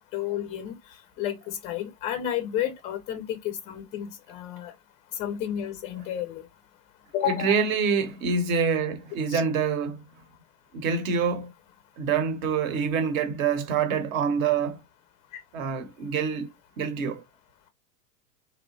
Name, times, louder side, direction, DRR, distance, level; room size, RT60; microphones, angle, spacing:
voice 1, 0.1-0.8 1.2-4.7 5.2-6.5 7.1-7.6 9.3-9.4, left 11 dB, 15° left, 0.4 m, -31 dB
voice 2, 7.2-10.0 10.7-11.5 12.0-14.8 15.5-16.5 16.8-17.2, right 6 dB, 55° right, 0.9 m, -26 dB
3.0 x 2.1 x 2.6 m
hypercardioid pair, 100°, 50 cm